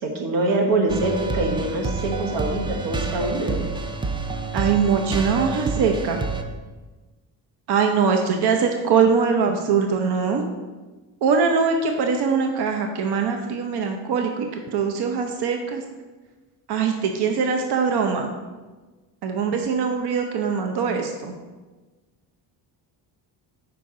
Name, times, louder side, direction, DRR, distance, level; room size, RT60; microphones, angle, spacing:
voice 1, 0.0-3.6, right 2 dB, 70° right, 1 dB, 1.3 m, -24 dB
sound 1, 0.9-6.4, right 3 dB, 10° right, 0.4 m, -28 dB
voice 2, 4.5-6.2 7.7-10.4 11.2-15.8 16.7-18.3 19.2-21.3, right 5 dB, 55° right, 4 dB, 0.7 m, -22 dB
5.9 x 4.6 x 3.7 m, 1.3 s
cardioid pair, 80°, 47 cm